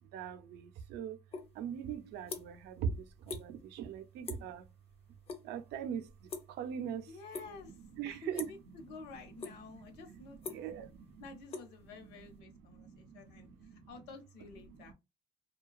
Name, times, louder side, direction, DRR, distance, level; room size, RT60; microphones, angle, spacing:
voice 1, 0.0-1.2 1.5-4.7 5.4-7.2 7.5-11.4 11.8-14.0 14.7-14.9, right 8 dB, 80° right, 0.4 m, -43 dB
sound 1, 1.3-1.5 1.8-2.7 3.0-3.5 3.7-4.0 4.3-4.6 4.9-5.4 5.7-6.9 7.3-7.8 8.3-8.7 9.1-9.8 10.1-12.3, left 4 dB, 35° left, 0.5 m, -43 dB
voice 2, 7.1-7.7 8.0-10.6 11.2-13.5 13.9-14.9, left 4 dB, 85° left, 0.8 m, -51 dB
2.5 x 2.2 x 2.2 m
cardioid pair, 110°, 17 cm